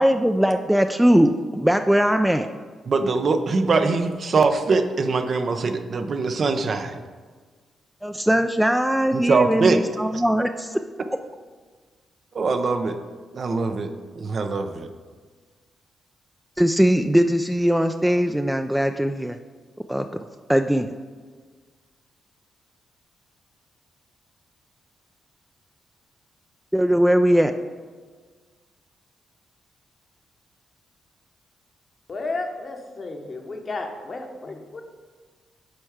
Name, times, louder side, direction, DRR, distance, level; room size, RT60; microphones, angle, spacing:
voice 1, 0.0-2.5 8.0-10.8 16.6-19.4 19.9-20.1 20.5-20.9 26.7-27.5, equal, 5° right, 6 dB, 0.4 m, -20 dB
voice 2, 2.9-7.0 9.1-9.8 10.1-10.2 12.3-13.0 13.3-13.9 14.2-14.9, right 4 dB, 55° right, 7 dB, 0.7 m, -22 dB
voice 3, 32.1-34.8, left 3 dB, 50° left, 3 dB, 1.1 m, -32 dB
7.8 x 4.4 x 4.8 m, 1.5 s
hypercardioid pair, 45°, 0 cm